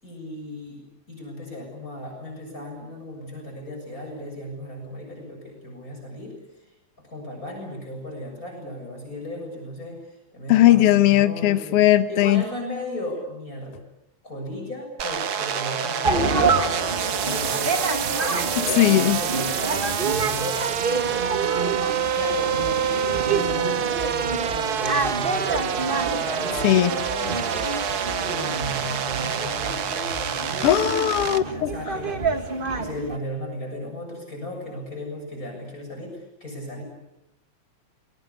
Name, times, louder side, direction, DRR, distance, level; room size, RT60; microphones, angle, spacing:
voice 1, 0.0-6.3 7.0-11.8 12.1-13.7 14.2-27.7 28.2-30.7 31.2-36.8, left 1 dB, 25° left, 2 dB, 7.6 m, -36 dB
voice 2, 10.5-12.4 18.8-19.2 26.6-27.0 30.6-31.7, left 13 dB, 60° left, 10 dB, 1.9 m, -18 dB
sound 1, 15.0-31.4, right 8 dB, 90° right, 0.8 m, -27 dB
sound 2, 16.0-33.2, right 3 dB, 30° right, 1.0 m, -28 dB
28.0 x 21.5 x 8.4 m, 0.91 s
omnidirectional pair, 3.4 m